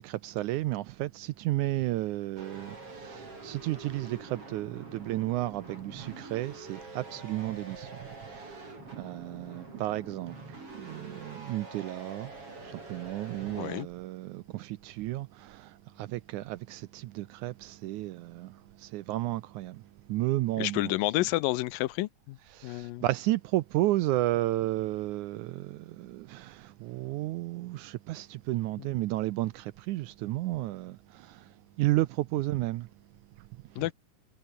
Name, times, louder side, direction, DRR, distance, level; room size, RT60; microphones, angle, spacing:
voice 1, 0.0-20.9 22.5-32.9 33.4-33.5, right 17 dB, 75° right, 1.9 m, -33 dB
sound 1, 2.4-13.8, right 2 dB, 40° right, 8.8 m, -46 dB
voice 2, 13.5-13.9 20.6-22.4 22.6-23.0 33.8-33.9, left 18 dB, 85° left, 2.5 m, -30 dB
omnidirectional pair, 3.9 m